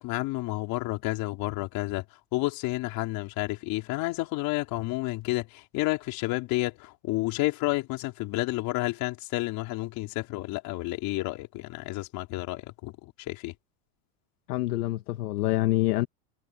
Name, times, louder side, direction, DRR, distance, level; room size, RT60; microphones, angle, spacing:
voice 1, 0.0-2.0 2.3-13.5, left 20 dB, 50° left, 4.4 m, -30 dB
voice 2, 14.5-16.1, left 17 dB, 85° left, 1.8 m, -26 dB
supercardioid pair, 145°, 45 cm